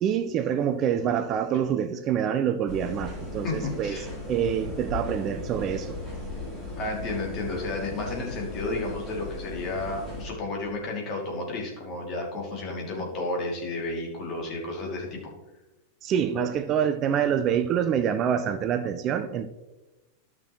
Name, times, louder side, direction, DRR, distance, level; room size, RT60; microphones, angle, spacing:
voice 1, 0.0-4.0 4.3-6.0 16.0-19.5, right 8 dB, 35° right, 0.5 m, -26 dB
sound 1, 2.7-10.2, left 2 dB, 15° left, 3.4 m, -37 dB
voice 2, 3.4-4.1 6.8-15.2, left 2 dB, 35° left, 2.5 m, -32 dB
13.0 x 6.0 x 3.1 m
figure-of-eight pair, 90°, 0 cm